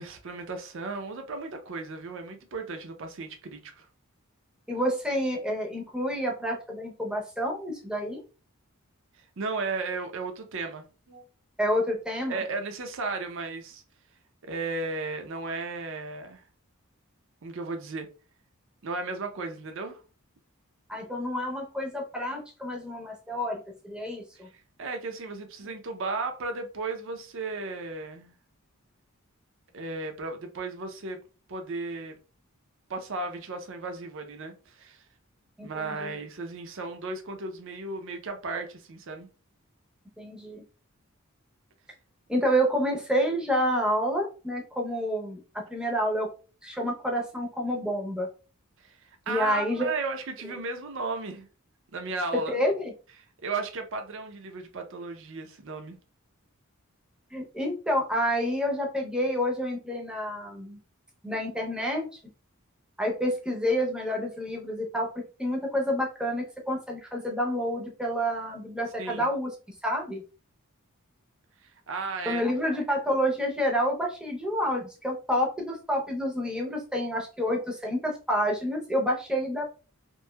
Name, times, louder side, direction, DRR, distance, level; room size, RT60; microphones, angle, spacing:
voice 1, 0.0-3.9 9.2-11.3 12.3-13.8 14.4-16.4 17.4-18.1 18.8-20.0 24.4-28.3 29.7-31.2 31.5-32.2 32.9-35.0 35.6-39.3 48.8-51.5 51.9-52.5 53.4-56.0 69.0-69.3 71.6-72.4, right 3 dB, 60° right, 0.6 m, -35 dB
voice 2, 4.7-8.2 11.6-12.4 20.9-24.5 35.6-36.1 40.2-40.6 42.3-46.3 46.6-48.3 49.3-49.9 52.5-52.9 57.3-60.8 61.2-62.1 63.0-65.1 65.4-69.5 69.8-70.2 72.3-79.6, equal, 5° right, 0.6 m, -28 dB
3.0 x 2.6 x 2.2 m
head